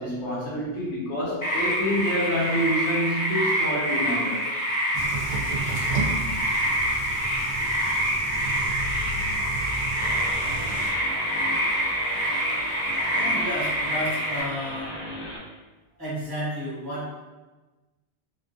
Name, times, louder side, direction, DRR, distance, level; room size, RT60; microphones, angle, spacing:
voice 1, 0.0-4.4, equal, 80° left, -5 dB, 1.1 m, -27 dB
sound 1, 1.4-14.4, equal, 30° left, 0.8 m, -26 dB
sound 2, 4.9-10.9, right 3 dB, 75° right, 0.9 m, -33 dB
sound 3, 10.0-15.4, equal, 65° left, 1.4 m, -37 dB
voice 2, 13.1-15.0 16.0-17.2, equal, 20° right, -8 dB, 1.0 m, -32 dB
2.8 x 2.4 x 2.6 m, 1.2 s
omnidirectional pair, 1.2 m